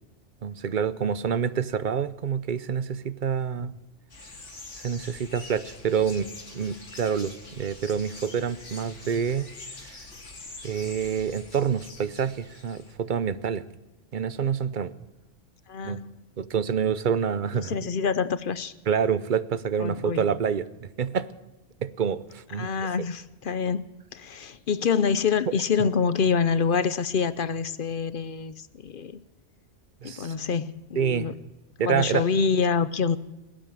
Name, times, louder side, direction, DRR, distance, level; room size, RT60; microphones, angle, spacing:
voice 1, 0.4-3.7 4.7-6.3 6.5-9.5 10.6-13.6 14.1-14.9 15.8-16.0 16.4-17.8 18.9-21.3 21.8-22.7 30.0-30.3 31.0-31.3 31.8-32.2, right 7 dB, 50° right, 16 dB, 0.8 m, -27 dB
sound 1, 4.1-12.9, left 3 dB, 75° left, 2.7 m, -45 dB
voice 2, 15.7-16.2 17.5-18.7 19.8-20.2 22.5-29.2 30.0-31.3 31.8-33.2, left 6 dB, 50° left, 15 dB, 0.8 m, -26 dB
21.5 x 9.0 x 7.1 m, 1.0 s
omnidirectional pair, 1.2 m